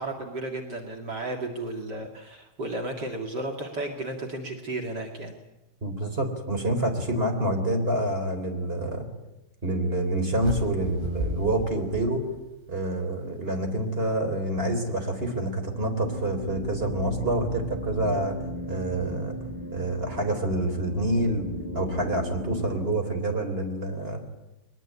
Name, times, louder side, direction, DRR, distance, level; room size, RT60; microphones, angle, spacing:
voice 1, 0.0-5.4, right 2 dB, 45° right, 2 dB, 1.3 m, -33 dB
voice 2, 5.8-9.1 9.6-12.3 12.7-18.4 18.7-19.4 19.7-21.4 21.7-24.2, right 1 dB, 15° right, 5 dB, 3.1 m, -27 dB
sound 1, 10.4-12.8, right 1 dB, 80° right, 7.0 m, -34 dB
sound 2, 15.5-22.8, equal, 5° left, 6.8 m, -37 dB
22.0 x 21.0 x 9.6 m, 0.98 s
omnidirectional pair, 5.4 m